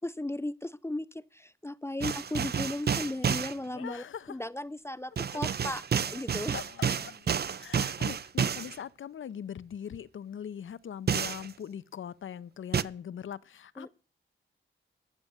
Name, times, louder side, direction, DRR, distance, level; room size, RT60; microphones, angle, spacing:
voice 1, 0.0-6.5 13.8-13.9, left 1 dB, 10° left, 0.5 m, -36 dB
sound 1, 2.0-3.5 5.2-8.8 11.1-11.5 12.7-12.8, right 7 dB, 50° right, 0.5 m, -30 dB
Male speech man speaking, 3.2-4.1 6.6-7.4, left 6 dB, 90° left, 1.5 m, -52 dB
voice 2, 3.8-4.3 6.5-6.9 7.6-13.9, left 8 dB, 70° left, 0.6 m, -41 dB
14.0 x 6.2 x 6.8 m
cardioid pair, 55°, 21 cm